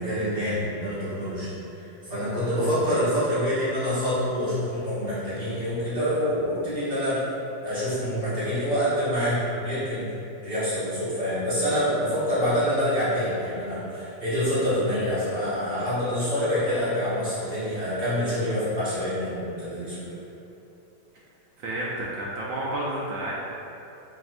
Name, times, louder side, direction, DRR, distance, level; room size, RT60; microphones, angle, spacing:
voice 1, 0.0-1.5 2.0-7.2 7.6-10.2 10.4-20.0, equal, 35° right, -12 dB, 1.2 m, -26 dB
voice 2, 21.6-23.3, right 1 dB, 80° right, -5 dB, 0.7 m, -30 dB
4.4 x 3.3 x 2.4 m, 2.9 s
omnidirectional pair, 1.9 m